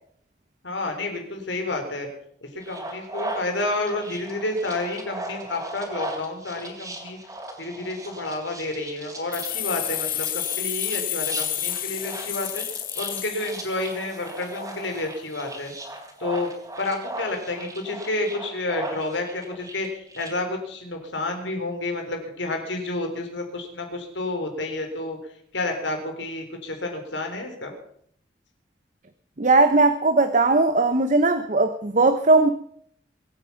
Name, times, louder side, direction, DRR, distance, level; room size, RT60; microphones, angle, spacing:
voice 1, 0.6-2.1 2.4-7.2 7.6-12.6 13.0-15.7 16.2-16.5 16.8-25.2 25.5-27.7, left 2 dB, 85° left, 4 dB, 4.0 m, -30 dB
sound 1, 2.6-20.3, right 1 dB, 20° right, 3.6 m, -38 dB
sound 2, 9.3-14.1, left 12 dB, 50° left, 1.5 m, -30 dB
voice 2, 29.4-32.5, right 3 dB, 45° right, 9 dB, 0.8 m, -18 dB
23.0 x 9.0 x 5.8 m, 0.66 s
head